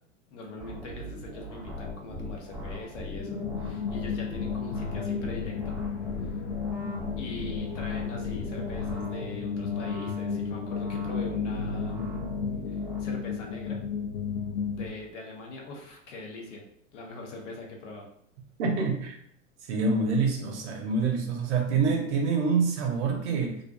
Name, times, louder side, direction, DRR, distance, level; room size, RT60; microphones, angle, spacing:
voice 1, 0.3-5.7 6.2-6.4 7.2-12.2 12.6-13.8 14.7-16.6 16.9-18.1, left 2 dB, 65° left, 1 dB, 0.8 m, -41 dB
sound 1, 0.6-13.0, left 1 dB, ahead, 0.9 m, -39 dB
sound 2, 3.2-14.9, left 6 dB, 50° left, 0.4 m, -33 dB
voice 2, 18.6-19.2 19.7-23.6, right 4 dB, 60° right, 2 dB, 0.7 m, -26 dB
2.5 x 2.2 x 2.3 m, 0.67 s
hypercardioid pair, 100°, 39 cm